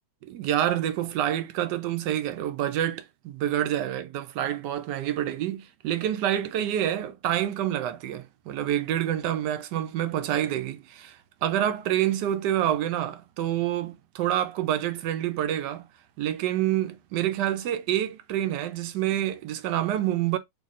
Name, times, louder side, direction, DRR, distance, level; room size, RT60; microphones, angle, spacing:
voice 1, 0.2-15.9 16.2-20.4, right 11 dB, 80° right, 1.2 m, -27 dB
3.1 x 2.4 x 4.0 m
omnidirectional pair, 1.9 m